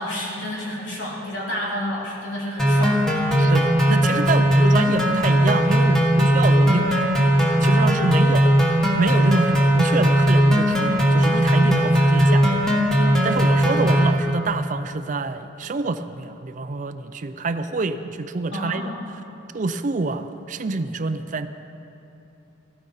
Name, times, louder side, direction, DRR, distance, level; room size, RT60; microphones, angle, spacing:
voice 1, 0.0-3.4 18.5-19.0, left 1 dB, 65° left, -5 dB, 3.5 m, -30 dB
sound 1, 2.6-14.1, equal, ahead, 1.4 m, -18 dB
voice 2, 3.4-8.5 9.0-18.9 19.5-21.5, right 3 dB, 40° right, 10 dB, 0.4 m, -27 dB
15.5 x 13.0 x 5.6 m, 2.9 s
head